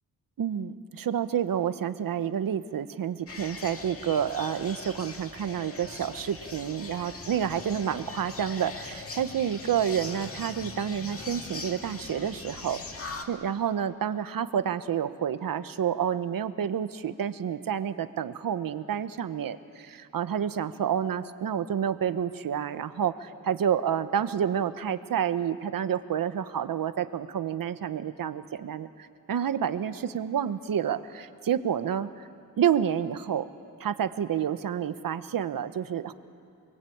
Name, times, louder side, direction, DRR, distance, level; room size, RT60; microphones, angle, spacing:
voice 1, 0.4-32.3 32.6-33.5 33.8-36.1, right 8 dB, 65° right, 11 dB, 1.1 m, -29 dB
sound 1, 3.3-13.3, left 4 dB, 40° left, 1.9 m, -41 dB
29.0 x 22.0 x 8.7 m, 2.5 s
wide cardioid pair, 140°, 36 cm